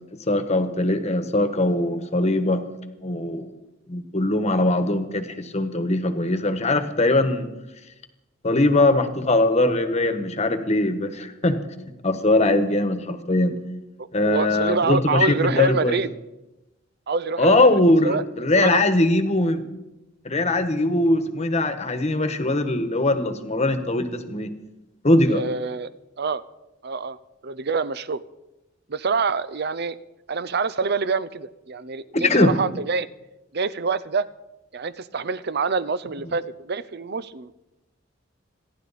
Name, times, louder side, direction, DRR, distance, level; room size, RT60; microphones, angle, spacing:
voice 1, 0.3-2.6 3.0-3.5 3.9-7.5 8.4-11.6 12.0-13.5 14.1-16.0 17.4-19.6 20.2-24.5 25.0-25.4 32.1-32.5, left 2 dB, 35° left, 9 dB, 1.3 m, -21 dB
voice 2, 14.0-16.1 17.1-18.8 25.3-25.9 26.2-26.4 26.8-27.2 27.4-28.2 28.9-30.0 30.3-33.1 33.5-34.3 34.7-37.5, right 4 dB, 55° right, 16 dB, 0.6 m, -26 dB
27.5 x 11.5 x 4.2 m, 0.97 s
head